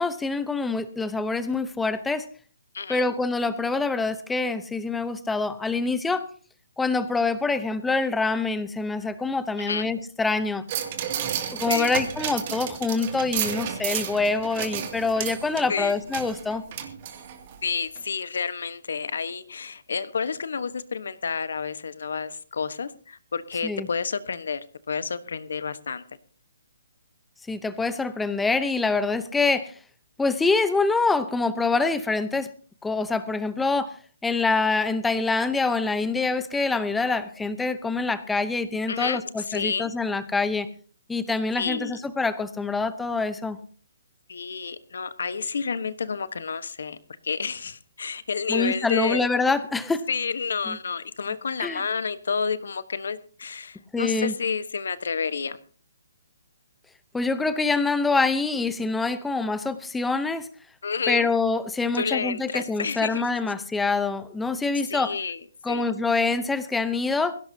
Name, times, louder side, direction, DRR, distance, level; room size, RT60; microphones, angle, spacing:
voice 1, 0.0-2.3 2.9-6.3 6.8-10.6 11.5-16.6 23.6-23.9 27.5-29.7 30.2-32.5 32.8-33.9 34.2-40.7 41.1-43.6 48.5-50.0 50.7-50.8 51.6-51.8 53.9-54.3 57.1-60.5 61.1-65.1 65.6-67.4, left 3 dB, 5° left, 13 dB, 0.8 m, -25 dB
voice 2, 2.7-3.1 9.6-9.9 11.7-11.9 15.7-16.0 17.6-24.6 24.9-26.0 38.9-39.9 41.6-42.0 44.3-47.0 47.2-49.3 50.1-55.6 60.8-61.4 61.9-63.2 64.9-65.9, left 5 dB, 70° left, 14 dB, 1.2 m, -30 dB
sound 1, 10.7-17.6 18.0-18.1, right 9 dB, 35° right, 2.4 m, -32 dB
20.0 x 17.0 x 2.8 m, 0.42 s
hypercardioid pair, 160°, 0 cm